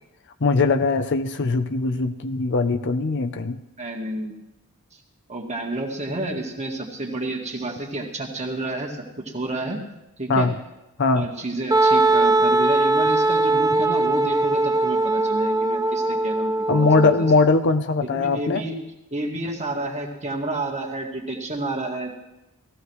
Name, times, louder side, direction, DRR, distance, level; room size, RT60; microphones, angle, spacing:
voice 1, 0.4-3.6 10.3-10.5 11.0-11.3 16.7-18.6, left 3 dB, 55° left, 8 dB, 0.6 m, -20 dB
voice 2, 3.8-4.3 5.3-9.8 10.2-10.5 11.1-17.3 18.2-18.7 19.1-22.2, right 2 dB, 30° right, 0 dB, 2.0 m, -30 dB
Wind instrument woodwind instrument, 11.7-17.3, right 2 dB, 15° right, 0.4 m, -20 dB
18.0 x 14.5 x 3.2 m, 0.96 s
head